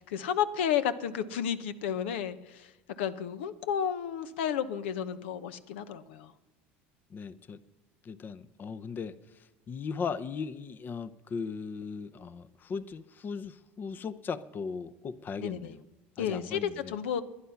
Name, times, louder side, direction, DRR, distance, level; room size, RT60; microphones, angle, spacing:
voice 1, 0.0-2.7 3.0-6.3 15.4-15.8 16.2-17.2, left 9 dB, 85° left, 12 dB, 0.9 m, -32 dB
voice 2, 7.1-7.6 8.0-9.2 9.7-15.8 16.2-16.9, left 5 dB, 35° left, 13 dB, 0.7 m, -38 dB
21.0 x 10.0 x 5.8 m, 1.0 s
supercardioid pair, 100°, 6 cm